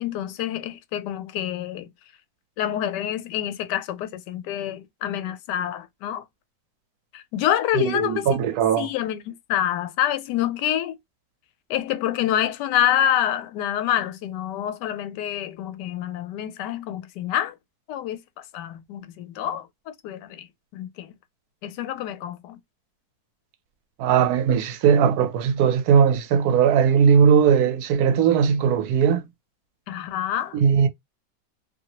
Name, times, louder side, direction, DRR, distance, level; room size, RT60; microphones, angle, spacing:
voice 1, 0.0-1.9 2.6-6.2 7.1-8.3 8.8-11.0 11.7-17.6 17.9-18.2 18.5-19.7 20.0-20.5 20.7-21.1 21.6-22.6 29.9-30.6, left 11 dB, 90° left, 1.2 m, -27 dB
voice 2, 7.7-8.9 24.0-29.3 30.5-30.9, right 7 dB, 75° right, 1.0 m, -19 dB
2.8 x 2.5 x 2.8 m
omnidirectional pair, 1.8 m